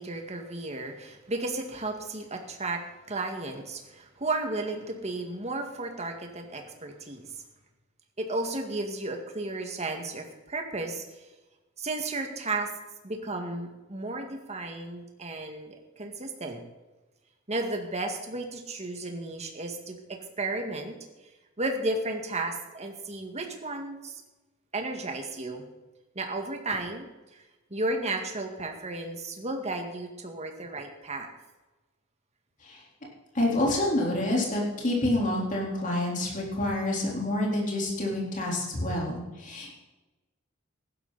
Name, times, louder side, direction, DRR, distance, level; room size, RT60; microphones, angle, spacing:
voice 1, 0.0-2.8 3.1-7.2 8.2-11.0 11.8-12.7 13.0-16.6 17.5-20.9 21.6-24.2 24.7-25.6 26.2-27.1 27.3-27.4 27.7-31.3, right 2 dB, 35° right, 4 dB, 2.0 m, -33 dB
voice 2, 33.3-39.7, left 1 dB, 40° left, -2 dB, 4.0 m, -28 dB
15.5 x 12.0 x 4.2 m, 1.1 s
head